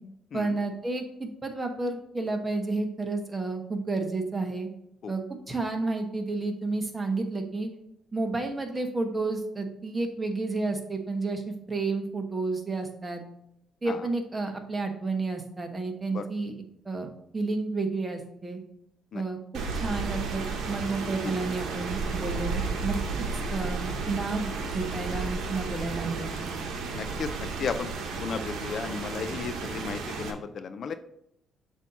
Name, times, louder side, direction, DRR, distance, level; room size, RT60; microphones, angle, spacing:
voice 1, 0.3-4.7 5.1-7.7 8.1-13.2 13.8-16.5 16.8-18.6 19.1-19.4 19.7-20.4 20.7-26.3, right 3 dB, 25° right, 4 dB, 1.1 m, -31 dB
Rain, 19.5-30.3, right 4 dB, 80° right, 1.0 m, -33 dB
voice 2, 26.9-27.3 27.6-27.9 28.2-30.9, left 6 dB, 60° left, 10 dB, 0.4 m, -34 dB
6.9 x 2.8 x 5.7 m, 0.78 s
cardioid pair, 90°, 0 cm